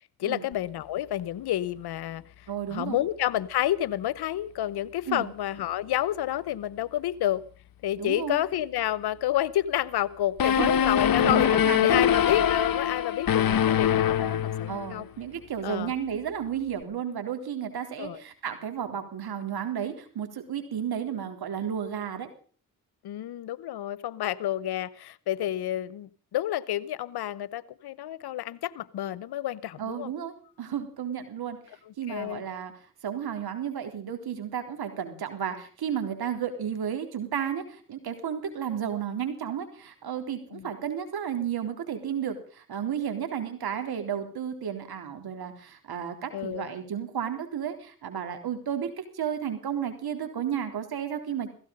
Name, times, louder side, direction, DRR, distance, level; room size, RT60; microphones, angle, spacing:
voice 1, 0.2-2.2 2.7-7.4 7.8-11.5 11.8-15.1 15.6-15.9 18.0-18.2 23.0-30.1 32.1-32.4 40.5-40.7 46.3-46.7, left 13 dB, 90° left, 20 dB, 0.9 m, -29 dB
voice 2, 2.5-3.0 5.1-5.3 8.0-8.4 10.4-10.7 11.2-12.1 14.7-22.3 29.8-31.6 32.0-32.7 33.0-51.5, right 8 dB, 80° right, 7 dB, 3.8 m, -33 dB
sound 1, 10.4-15.0, left 9 dB, 65° left, 1.2 m, -23 dB
16.5 x 16.0 x 5.4 m, 0.43 s
cardioid pair, 60°, 38 cm